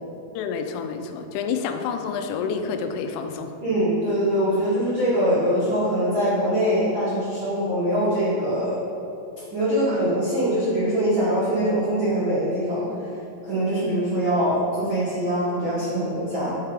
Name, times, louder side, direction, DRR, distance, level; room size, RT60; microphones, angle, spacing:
voice 1, 0.3-3.6, left 6 dB, 85° left, 6 dB, 3.1 m, -28 dB
voice 2, 3.6-8.8 9.5-12.9 13.5-16.6, equal, 80° right, -12 dB, 1.1 m, -23 dB
6.2 x 5.7 x 4.8 m, 2.8 s
omnidirectional pair, 5.5 m